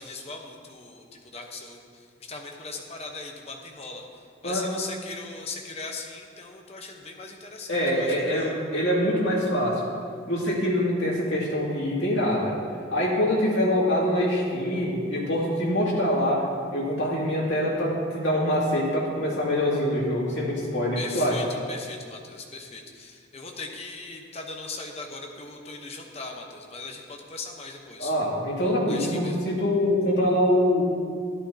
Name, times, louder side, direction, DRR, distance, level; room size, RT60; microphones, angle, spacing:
voice 1, 0.0-1.8 2.3-4.0 4.4-8.5 21.0-28.1 28.9-29.4, left 3 dB, 30° left, 2 dB, 0.9 m, -39 dB
voice 2, 7.7-9.8 10.3-12.6 12.9-16.4 16.7-21.4 28.0-30.8, equal, 60° left, -5 dB, 2.4 m, -24 dB
12.5 x 11.5 x 2.8 m, 2.2 s
head